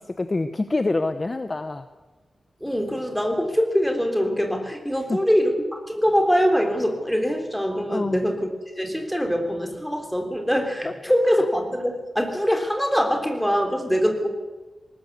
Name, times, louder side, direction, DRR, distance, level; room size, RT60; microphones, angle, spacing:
voice 1, 0.0-1.8 5.1-5.2 7.9-8.2, left 2 dB, 25° left, 9 dB, 0.9 m, -26 dB
voice 2, 2.6-8.5 8.8-14.3, equal, ahead, 3 dB, 3.6 m, -23 dB
20.0 x 19.0 x 8.2 m, 1.2 s
wide cardioid pair, 170°, 0 cm